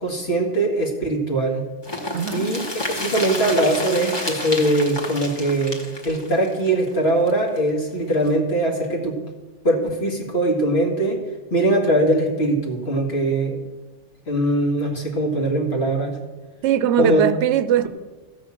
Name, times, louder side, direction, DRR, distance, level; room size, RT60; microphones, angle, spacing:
voice 1, 0.0-1.7 2.3-2.6 2.9-5.8 6.0-9.2 9.6-11.2 11.5-13.6 14.3-16.2 17.0-17.3, right 1 dB, 60° left, 2.1 m, -21 dB
sound 1, 1.8-7.6 7.9-8.0 8.3-8.4, left 1 dB, 20° left, 1.4 m, -30 dB
voice 2, 2.1-2.5 16.6-17.9, right 10 dB, 75° right, 0.8 m, -20 dB
14.5 x 5.9 x 7.2 m
omnidirectional pair, 1.2 m